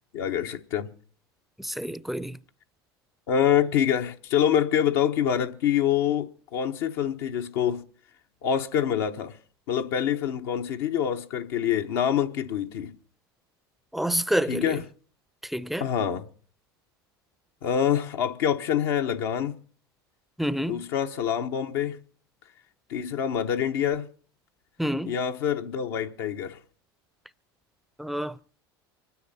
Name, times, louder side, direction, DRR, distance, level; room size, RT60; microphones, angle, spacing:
voice 1, 0.1-0.9 3.3-7.8 8.4-9.4 9.7-12.9 14.5-14.8 15.8-16.3 17.6-19.6 20.7-22.0 22.9-24.1 25.1-26.6, left 9 dB, 70° left, 1.0 m, -26 dB
voice 2, 1.6-2.4 13.9-14.8 15.4-15.8 20.4-20.8 24.8-25.1 28.0-28.3, equal, ahead, 0.6 m, -28 dB
25.0 x 9.9 x 4.2 m
hypercardioid pair, 85°, 13 cm